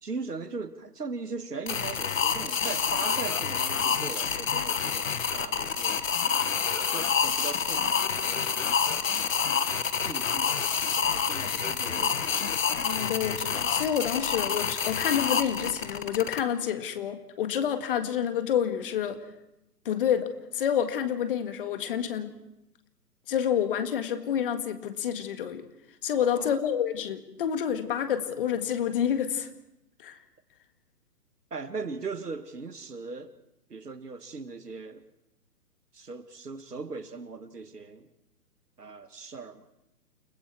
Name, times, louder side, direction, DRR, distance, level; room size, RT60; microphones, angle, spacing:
voice 1, 0.0-6.0 6.9-8.8 9.1-9.4 10.0-10.7 11.0-12.5 26.2-26.5 31.5-33.3 33.7-35.0 35.9-38.1 38.8-39.6, right 4 dB, 75° right, 11 dB, 1.8 m, -39 dB
sound 1, 1.7-16.4, left 7 dB, 55° left, 1.5 m, -28 dB
voice 2, 12.8-19.2 19.9-22.3 23.3-25.7 26.0-29.5 30.0-30.2, left 9 dB, 35° left, 9 dB, 1.8 m, -28 dB
30.0 x 20.0 x 4.7 m, 0.87 s
figure-of-eight pair, 130°, 48 cm